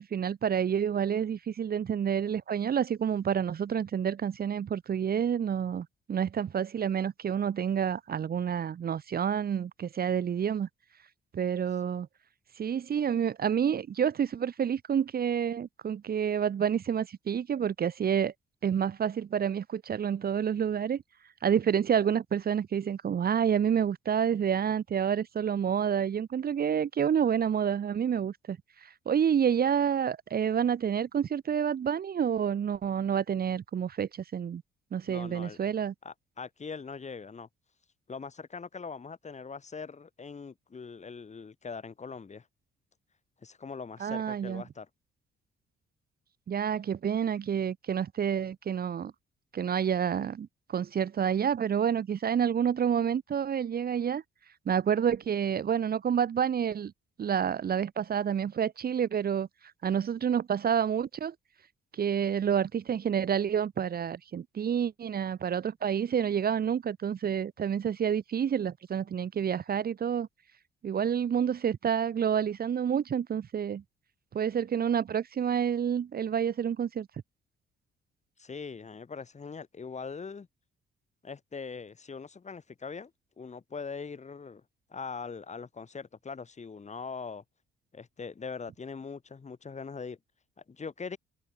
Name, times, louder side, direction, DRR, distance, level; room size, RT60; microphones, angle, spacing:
voice 1, 0.0-10.7 11.3-12.1 12.6-18.3 18.6-21.0 21.4-34.6 34.9-35.9 44.0-44.6 46.5-49.1 49.5-54.2 54.6-56.9 57.2-59.5 59.8-61.3 61.9-70.3 70.8-73.8 74.3-77.1, right 8 dB, 50° right, 1.6 m, -29 dB
voice 2, 35.1-35.6 36.0-37.5 38.1-42.5 43.4-44.9 78.4-80.5 81.2-83.1 83.4-84.6 84.9-87.4 87.9-90.2 90.7-91.2, left 5 dB, 35° left, 6.9 m, -41 dB
cardioid pair, 90°, 20 cm